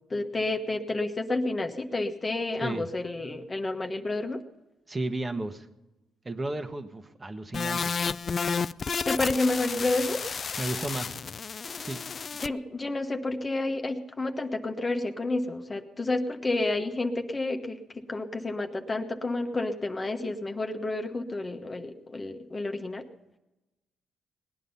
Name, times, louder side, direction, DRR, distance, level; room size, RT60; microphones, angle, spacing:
voice 1, 0.1-4.4 9.1-10.2 12.4-23.0, left 2 dB, 25° left, 4 dB, 1.2 m, -30 dB
voice 2, 4.9-5.7 6.2-7.9 10.6-11.2 11.8-12.0, right 2 dB, 25° right, 7 dB, 1.3 m, -33 dB
sound 1, 7.5-12.5, left 5 dB, 40° left, 0.4 m, -31 dB
19.0 x 10.0 x 5.6 m, 1.0 s
cardioid pair, 90°, 0 cm